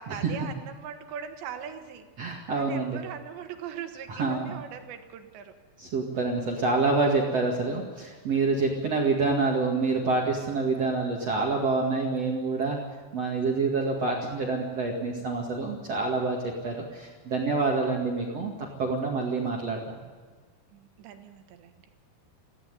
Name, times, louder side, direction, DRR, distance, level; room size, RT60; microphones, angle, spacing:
voice 1, 0.0-2.1 2.6-5.5 8.5-8.8 20.7-21.8, right 8 dB, 85° right, 7 dB, 3.9 m, -40 dB
voice 2, 2.2-3.0 4.1-4.5 5.8-12.8 13.1-18.5 18.8-20.0, right 3 dB, 45° right, 0 dB, 2.6 m, -27 dB
17.0 x 15.5 x 9.8 m, 1.5 s
omnidirectional pair, 4.9 m